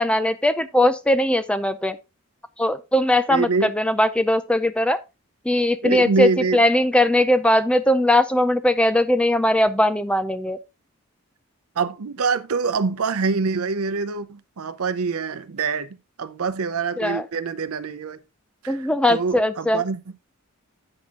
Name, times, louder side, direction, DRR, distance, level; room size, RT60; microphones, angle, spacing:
voice 1, 0.0-2.0 2.6-5.0 5.4-10.6 17.0-17.3 18.7-19.8, left 1 dB, 5° left, 0.4 m, -20 dB
voice 2, 3.3-3.7 5.8-6.6 11.8-15.9 16.2-18.2 18.6-18.8 19.1-20.0, right 4 dB, 85° right, 0.6 m, -25 dB
8.7 x 6.2 x 3.7 m
head